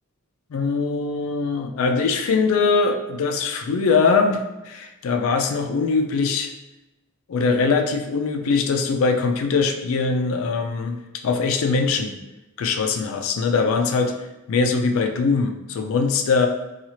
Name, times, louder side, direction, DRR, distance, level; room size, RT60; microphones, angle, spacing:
voice 1, 0.5-6.5 7.3-11.0 11.2-12.2 12.6-14.1 14.5-16.5, left 4 dB, 65° left, 5 dB, 0.3 m, -22 dB
2.8 x 2.3 x 2.9 m, 1.0 s
head